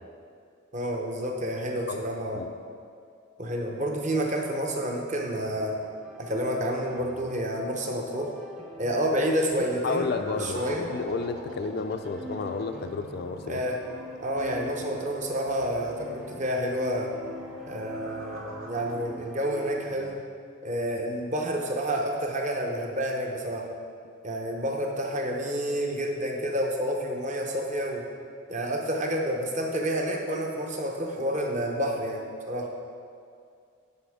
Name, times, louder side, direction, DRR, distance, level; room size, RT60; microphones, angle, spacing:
voice 1, 0.7-2.4 3.4-5.8 6.2-8.3 8.8-10.1 10.4-10.9 13.5-13.8 14.2-17.1 17.7-20.2 20.6-23.7 24.2-28.0 28.5-32.7, equal, 35° right, 0 dB, 0.7 m, -29 dB
sound 1, 5.4-20.1, equal, ahead, 0.6 m, -46 dB
voice 2, 9.5-13.6, left 4 dB, 50° left, 7 dB, 0.3 m, -31 dB
sound 2, 9.8-19.0, equal, 80° right, 0.8 m, -43 dB
11.0 x 4.3 x 3.5 m, 2.3 s
head